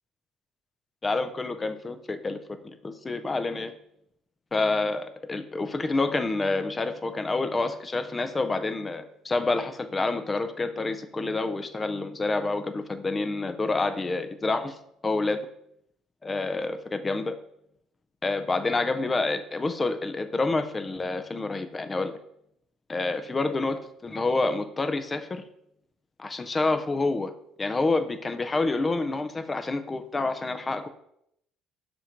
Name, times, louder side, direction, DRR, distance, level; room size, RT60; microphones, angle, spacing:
voice 1, 1.0-2.4 2.8-3.7 4.5-14.8 15.0-15.5 16.2-17.4 18.2-22.1 22.9-25.4 26.2-27.3 27.6-30.9, left 3 dB, 20° left, 9 dB, 0.5 m, -28 dB
7.2 x 2.6 x 5.8 m, 0.75 s
cardioid pair, 145°, 0 cm